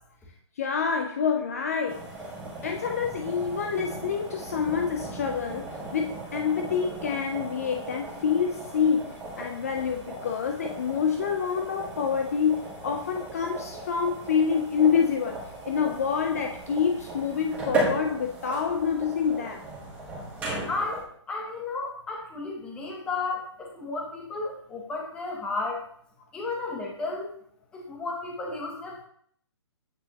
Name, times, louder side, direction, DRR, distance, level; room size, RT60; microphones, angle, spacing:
voice 1, 0.6-2.2 2.5-19.6, left 6 dB, 30° left, 4 dB, 0.5 m, -27 dB
sound 1, 1.9-21.0, right 2 dB, 10° right, 1.5 m, -36 dB
voice 2, 20.7-25.8 26.3-27.3 27.7-29.0, left 3 dB, 5° left, -1 dB, 0.8 m, -33 dB
8.5 x 5.5 x 2.9 m, 0.64 s
hypercardioid pair, 170°, 15 cm